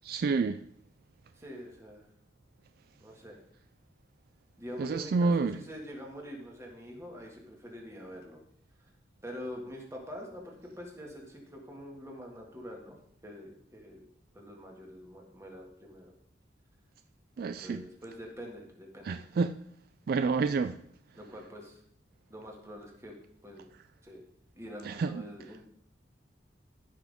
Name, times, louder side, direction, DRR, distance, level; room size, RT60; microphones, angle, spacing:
voice 1, 0.0-0.6 4.8-5.6 17.4-17.8 19.0-19.5 20.1-20.8 24.8-25.2, right 4 dB, 55° right, 0.3 m, -28 dB
voice 2, 1.4-2.1 3.0-3.4 4.6-8.4 9.2-13.0 13.2-14.0 14.3-16.1 17.4-19.2 21.1-21.8 22.3-23.2 23.4-23.7 24.0-24.2 24.6-25.7, equal, 15° right, 2.0 m, -45 dB
15.0 x 6.0 x 3.6 m
head